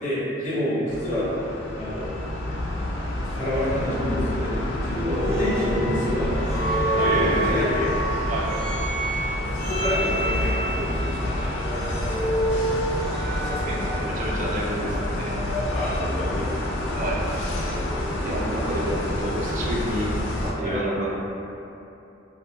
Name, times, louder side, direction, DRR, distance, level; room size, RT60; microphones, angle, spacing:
voice 1, 0.0-1.3 1.8-2.2 3.3-6.6 6.9-7.9 9.5-11.2 11.7-11.9 15.7-17.0 20.6-20.8, left 1 dB, 40° left, -11 dB, 0.8 m, -28 dB
sound 1, 0.9-20.5, left 1 dB, 65° left, 0.3 m, -28 dB
sound 2, 5.1-14.3, right 1 dB, ahead, 0.8 m, -29 dB
voice 2, 7.0-7.5 8.3-8.5 11.7-11.8 13.0-15.4 16.9-17.2 17.6-21.1, right 1 dB, 45° right, -3 dB, 0.4 m, -30 dB
2.1 x 2.1 x 3.0 m, 2.8 s
head